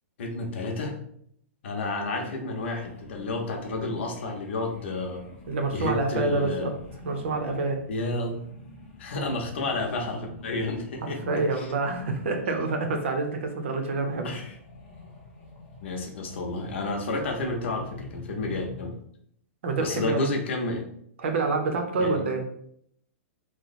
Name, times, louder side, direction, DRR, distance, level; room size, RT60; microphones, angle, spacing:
voice 1, 0.2-1.0 1.6-5.2 5.7-6.7 7.9-8.4 9.0-11.7 14.2-14.5 15.8-18.9 19.8-20.9 22.0-22.2, left 2 dB, 55° left, 2 dB, 0.8 m, -31 dB
sound 1, 2.6-12.7 13.1-19.0, left 3 dB, 10° left, 0.7 m, -46 dB
voice 2, 5.5-6.7 7.0-7.8 11.0-14.3 19.6-20.3 21.2-22.4, right 3 dB, 55° right, 5 dB, 0.7 m, -27 dB
3.0 x 2.1 x 4.1 m, 0.69 s
hypercardioid pair, 175°, 8 cm